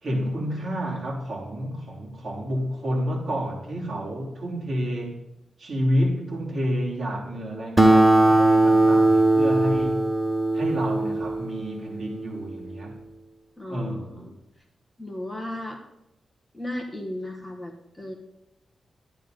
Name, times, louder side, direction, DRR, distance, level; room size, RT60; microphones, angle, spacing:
voice 1, 0.0-5.2 5.6-10.0 10.5-12.9 13.7-14.3, equal, 40° right, -3 dB, 3.3 m, -29 dB
Acoustic guitar, 7.8-12.6, right 2 dB, 10° right, 0.8 m, -20 dB
voice 2, 13.6-14.3 15.0-15.8 16.5-18.1, left 1 dB, 10° left, 2 dB, 1.3 m, -35 dB
12.0 x 9.7 x 5.2 m, 0.90 s
wide cardioid pair, 165°, 0 cm